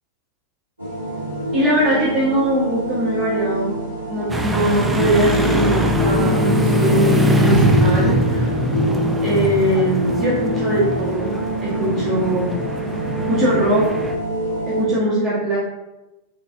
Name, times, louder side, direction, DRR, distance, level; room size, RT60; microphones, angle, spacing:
sound 1, 0.8-14.8, right 1 dB, 80° right, 1.0 m, -25 dB
voice 1, 1.5-3.7 4.1-8.5 9.2-11.3 11.6-12.5 13.3-13.8 14.7-15.6, equal, 30° right, -7 dB, 0.7 m, -21 dB
sound 2, 4.3-14.1, equal, 10° right, 0.3 m, -22 dB
3.6 x 2.3 x 2.5 m, 1.0 s
figure-of-eight pair, 90°, 0 cm